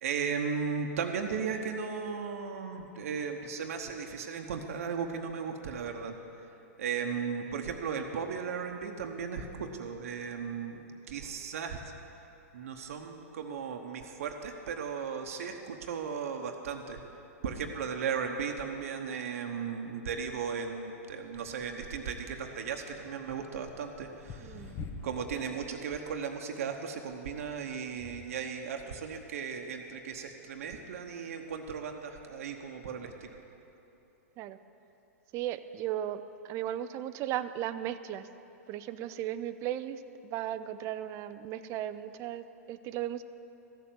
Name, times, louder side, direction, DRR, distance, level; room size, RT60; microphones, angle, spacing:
voice 1, 0.0-6.2 6.8-11.8 12.5-17.0 17.4-24.7 25.0-33.3, right 6 dB, 70° right, 4 dB, 1.0 m, -36 dB
sound 1, 21.3-22.1 22.9-25.4 25.7-26.2 27.3-28.5 29.3-29.4, left 4 dB, 30° left, 1.1 m, -47 dB
voice 2, 24.4-24.8 34.4-34.6 35.3-38.3 38.7-43.2, right 11 dB, 35° right, 12 dB, 0.4 m, -36 dB
14.5 x 7.0 x 7.6 m, 2.9 s
hypercardioid pair, 115°, 8 cm